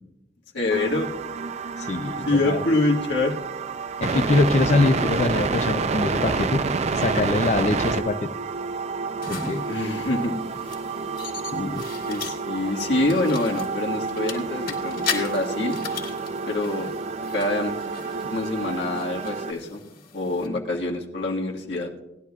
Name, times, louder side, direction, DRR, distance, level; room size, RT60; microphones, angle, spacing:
voice 1, 0.5-1.1 2.2-3.3 4.1-4.2 9.7-10.3 12.1-15.8 16.4-16.9 17.3-17.8 18.3-19.8 20.1-21.9, left 2 dB, 90° left, -1 dB, 1.7 m, -25 dB
sound 1, 0.7-19.5, right 4 dB, 40° right, 0.4 m, -29 dB
voice 2, 1.8-2.6 4.0-6.6 6.9-8.3 9.3-9.6 11.5-11.8, left 2 dB, 40° left, 5 dB, 0.5 m, -23 dB
sound 2, 9.2-20.5, left 6 dB, 55° left, 2.2 m, -38 dB
19.0 x 11.5 x 2.4 m, 0.95 s
head